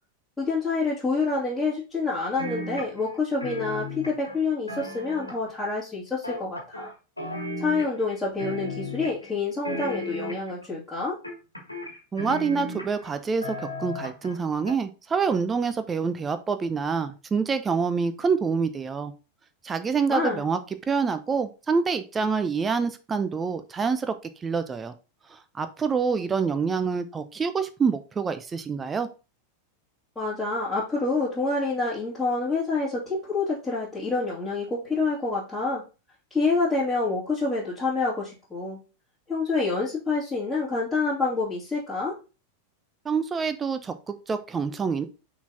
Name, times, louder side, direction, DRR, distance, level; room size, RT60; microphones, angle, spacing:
voice 1, 0.4-6.9 7.6-11.2 20.1-20.4 30.2-35.8 36.3-38.8 39.3-42.2, left 3 dB, 5° left, -10 dB, 2.6 m, -27 dB
sound 1, 2.4-3.2 3.4-5.6 6.2-6.9 7.2-8.1 8.4-9.3 9.6-10.6 11.2-13.1 13.4-14.4 14.7-14.8, left 1 dB, 85° left, 1.6 m, -35 dB
voice 2, 12.1-19.1 19.6-20.6 20.9-24.1 24.4-24.9 25.6-29.1 43.0-45.1, right 5 dB, 20° right, 10 dB, 0.7 m, -26 dB
6.0 x 4.0 x 4.1 m, 0.31 s
figure-of-eight pair, 90°, 0 cm